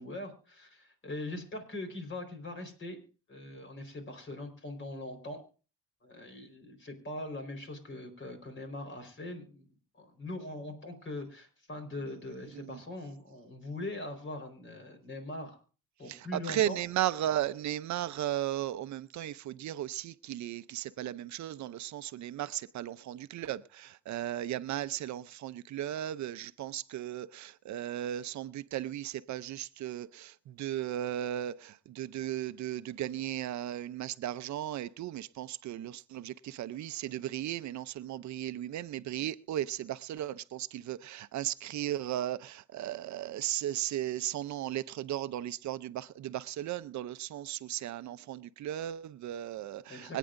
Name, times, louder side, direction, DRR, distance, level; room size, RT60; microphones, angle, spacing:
voice 1, 0.0-3.0 3.3-5.5 6.0-9.7 9.9-15.6 16.0-16.8 49.9-50.2, left 2 dB, 40° left, 4.4 m, -41 dB
voice 2, 16.1-50.2, right 12 dB, 70° right, 0.6 m, -36 dB
24.5 x 9.1 x 2.6 m
cardioid pair, 90°, 30 cm